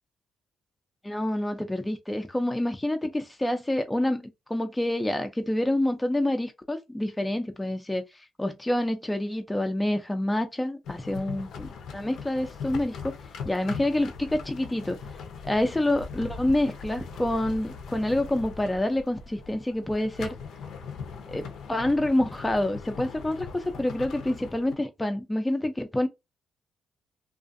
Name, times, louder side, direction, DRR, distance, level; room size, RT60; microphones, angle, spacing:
voice 1, 1.0-13.1 13.4-15.0 15.4-20.4 21.3-26.1, left 1 dB, 10° left, 0.4 m, -27 dB
sound 1, 10.8-24.7, left 5 dB, 75° left, 0.6 m, -40 dB
2.4 x 2.4 x 2.5 m
cardioid pair, 90°, 0 cm